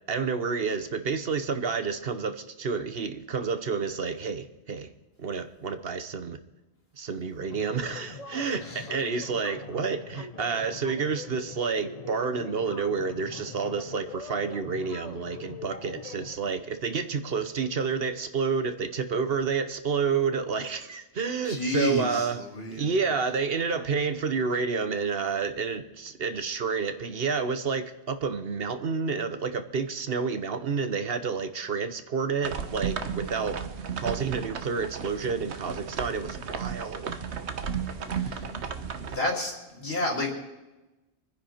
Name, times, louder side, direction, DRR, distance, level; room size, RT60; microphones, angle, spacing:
voice 1, 0.1-4.9 5.2-6.4 7.0-33.6 34.0-37.2, right 5 dB, 60° right, 10 dB, 1.1 m, -29 dB
sound 1, 7.5-16.4, left 4 dB, 35° left, 0.9 m, -43 dB
voice 2, 21.4-22.9 38.2-38.4 39.1-40.3, left 2 dB, 60° left, 1 dB, 3.2 m, -30 dB
sound 2, 32.4-39.2, right 6 dB, 75° right, 1.3 m, -34 dB
24.5 x 10.0 x 4.4 m, 1.0 s
omnidirectional pair, 1.1 m